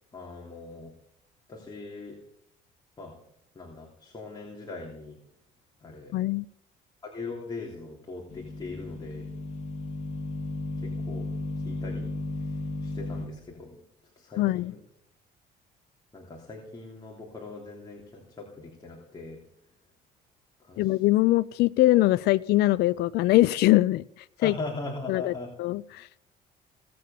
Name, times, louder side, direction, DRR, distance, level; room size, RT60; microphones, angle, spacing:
voice 1, 0.1-0.9 1.5-2.2 3.0-3.1 3.5-5.2 5.8-6.1 7.0-9.3 11.1-11.3 11.6-12.1 12.4-12.5 12.8-13.8 14.2-14.8 16.1-19.4 20.6-20.9 24.4-25.5, left 3 dB, 25° left, -1 dB, 3.2 m, -40 dB
voice 2, 6.1-6.4 14.4-14.7 20.8-24.0 24.4-24.5 25.1-25.3 25.6-26.1, left 17 dB, 75° left, 15 dB, 0.4 m, -22 dB
sound 1, 8.3-13.3, left 2 dB, 45° left, 2.7 m, -34 dB
18.0 x 7.7 x 7.0 m, 0.77 s
cardioid pair, 110°, 17 cm